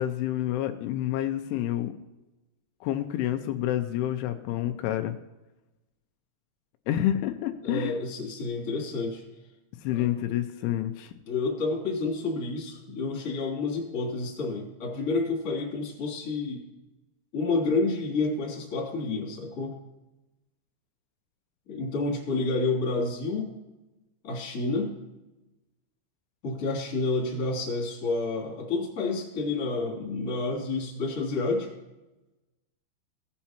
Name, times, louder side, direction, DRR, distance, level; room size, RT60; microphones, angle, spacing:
voice 1, 0.0-1.9 2.8-5.2 6.9-8.0 9.8-11.1, left 12 dB, 85° left, 7 dB, 3.0 m, -28 dB
voice 2, 7.6-9.2 9.9-10.1 11.3-16.7 17.3-19.8 21.7-23.5 24.2-24.9 26.4-31.7, left 3 dB, 25° left, -2 dB, 2.1 m, -29 dB
17.5 x 8.3 x 2.9 m, 1.0 s
omnidirectional pair, 5.6 m